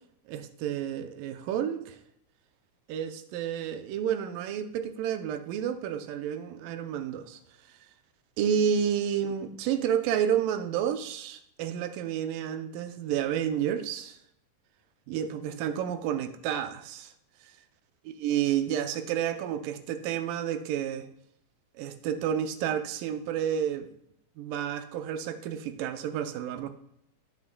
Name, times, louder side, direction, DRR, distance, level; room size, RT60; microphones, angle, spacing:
voice 1, 0.3-2.0 2.9-7.4 8.4-14.2 15.1-17.1 18.1-21.1 21.8-23.9 24.4-26.7, right 9 dB, 85° right, 9 dB, 2.3 m, -30 dB
17.0 x 6.0 x 2.2 m, 0.73 s
omnidirectional pair, 3.8 m